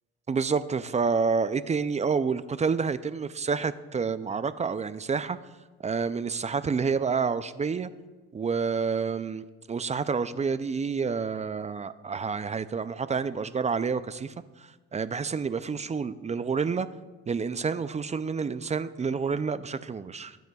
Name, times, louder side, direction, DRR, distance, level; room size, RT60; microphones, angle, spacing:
voice 1, 0.3-5.4 5.8-7.9 8.3-16.9 17.3-20.4, right 5 dB, 25° right, 0.4 m, -29 dB
18.5 x 9.2 x 2.3 m
cardioid pair, 90°, 30 cm